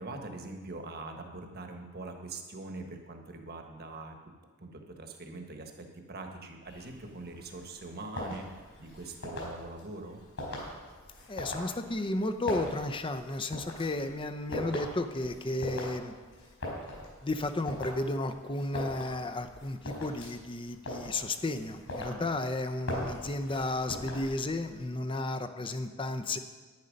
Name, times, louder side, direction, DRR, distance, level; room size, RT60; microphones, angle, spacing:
voice 1, 0.0-4.2 4.6-10.2 22.1-22.4, right 2 dB, 45° right, 4 dB, 1.3 m, -43 dB
Footsteps indoor on floor, 6.6-24.8, left 1 dB, 65° left, 4.5 m, -42 dB
voice 2, 11.3-16.1 17.2-26.4, left 2 dB, 20° left, 10 dB, 0.5 m, -33 dB
10.5 x 9.9 x 5.2 m, 1.4 s
head